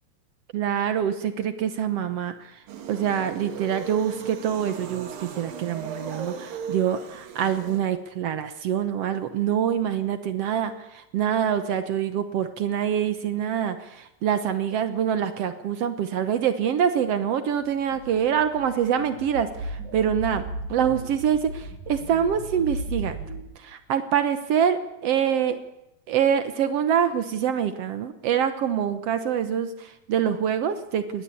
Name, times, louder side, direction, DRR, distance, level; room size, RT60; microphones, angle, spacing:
voice 1, 0.5-2.6 2.9-20.4 20.7-23.1 23.6-25.6 26.1-31.2, right 8 dB, 85° right, 10 dB, 1.3 m, -25 dB
sound 1, 2.7-7.8, right 6 dB, 65° right, 3.7 m, -37 dB
sound 2, 17.6-23.4, right 1 dB, 50° right, 9.6 m, -36 dB
22.5 x 19.0 x 8.5 m, 0.89 s
omnidirectional pair, 4.4 m